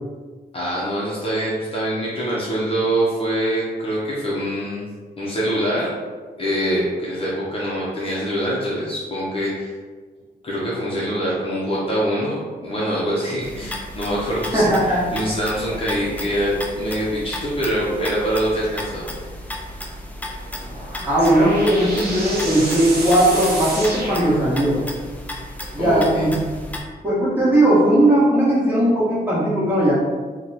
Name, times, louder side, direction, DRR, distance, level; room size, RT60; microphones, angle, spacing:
voice 1, 0.5-4.8 5.2-5.9 6.4-9.7 10.4-12.4 12.6-14.6 15.1-19.1 21.2-21.3 25.8-26.3, equal, 35° left, -6 dB, 0.7 m, -24 dB
sound 1, 13.4-26.8, left 1 dB, 10° left, 0.3 m, -34 dB
voice 2, 14.5-15.2 21.0-24.8 25.7-26.3 27.0-29.9, right 1 dB, 10° right, -10 dB, 1.3 m, -18 dB
sound 2, 20.4-25.0, right 1 dB, 65° right, 0.9 m, -30 dB
2.9 x 2.2 x 3.9 m, 1.4 s
wide cardioid pair, 140°, 17 cm